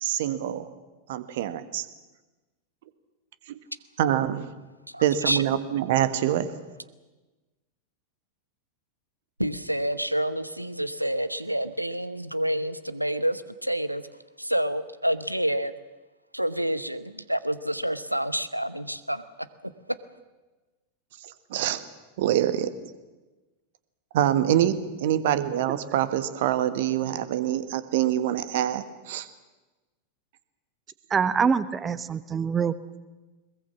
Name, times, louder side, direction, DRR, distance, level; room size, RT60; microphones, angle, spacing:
voice 1, 0.0-0.7 1.1-1.9 3.5-3.6 4.0-4.5 5.0-6.5 21.2-21.8 22.2-22.7 24.1-29.3, right 11 dB, 55° right, 13 dB, 1.5 m, -25 dB
voice 2, 4.9-5.4 9.4-14.0 14.4-15.7 16.3-19.2 19.9-20.0, right 1 dB, 90° right, 15 dB, 1.0 m, -28 dB
voice 3, 31.1-32.7, right 6 dB, 20° right, 16 dB, 1.0 m, -25 dB
21.5 x 21.0 x 7.4 m, 1.2 s
figure-of-eight pair, 90°, 0 cm